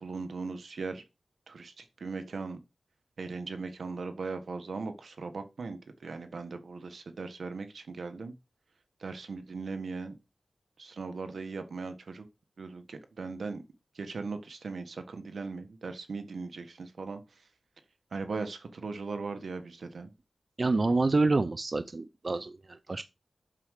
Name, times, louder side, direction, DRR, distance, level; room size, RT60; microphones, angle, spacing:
voice 1, 0.0-1.0 1.5-1.7 2.0-2.6 3.2-8.3 9.0-10.1 10.8-12.2 12.6-13.6 14.0-17.2 18.1-20.1, right 4 dB, 75° right, 1.6 m, -38 dB
voice 2, 20.6-23.0, right 3 dB, 45° right, 0.6 m, -27 dB
7.5 x 6.3 x 6.5 m
cardioid pair, 60°, 0 cm